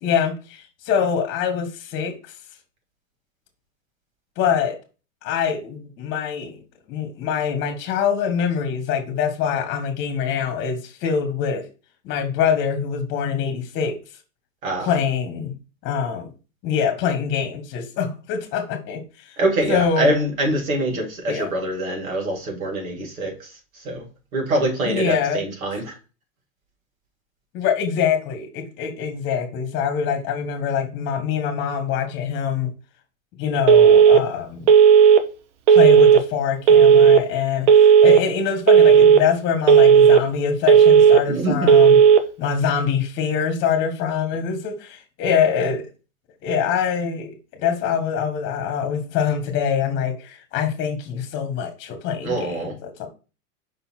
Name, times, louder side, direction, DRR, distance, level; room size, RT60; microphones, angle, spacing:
voice 1, 0.0-2.3 4.4-4.8 5.2-6.6 6.9-11.7 12.0-14.0 14.8-15.5 15.8-16.3 16.6-19.3 19.7-20.1 21.3-21.5 24.8-25.4 27.5-32.7 33.4-34.7 35.7-42.0 42.4-45.9 46.4-53.1, left 7 dB, 30° left, 7 dB, 1.4 m, -24 dB
voice 2, 14.6-14.9 19.4-23.5 23.8-24.1 24.3-25.9 41.3-41.7 52.2-52.7, right 1 dB, 80° right, 0 dB, 3.3 m, -24 dB
Telephone, 33.7-34.2 34.7-35.2 35.7-36.2 36.7-37.2 37.7-38.2 38.7-39.2 39.7-40.2 40.7-41.2 41.7-42.2, right 7 dB, 60° right, 0.9 m, -11 dB
5.4 x 3.9 x 4.4 m, 0.33 s
hypercardioid pair, 150°, 41 cm